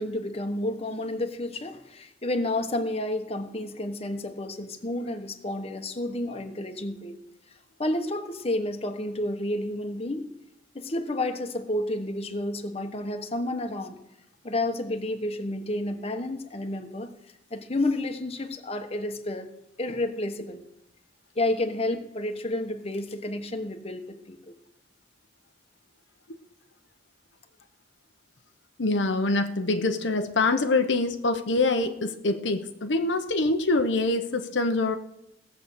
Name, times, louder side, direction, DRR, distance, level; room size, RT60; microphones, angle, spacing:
voice 1, 0.0-7.2 7.8-10.3 10.7-14.0 14.4-17.1 17.5-19.5 19.8-20.6 21.3-24.5, left 1 dB, 35° left, 5 dB, 1.2 m, -30 dB
voice 2, 28.8-35.0, left 2 dB, 85° left, 6 dB, 1.0 m, -25 dB
17.0 x 7.6 x 6.7 m, 0.82 s
head